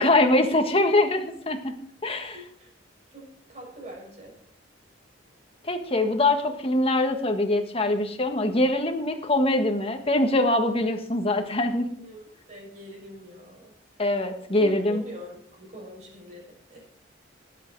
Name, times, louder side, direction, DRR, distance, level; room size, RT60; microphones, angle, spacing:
voice 1, 0.0-1.7 2.0-2.4 5.6-11.9 14.0-15.0, left 2 dB, 30° left, 5 dB, 1.5 m, -23 dB
voice 2, 2.2-2.7 3.1-4.4 12.0-13.7 14.5-16.8, right 1 dB, 40° right, -1 dB, 6.5 m, -44 dB
18.5 x 8.4 x 4.7 m, 0.63 s
head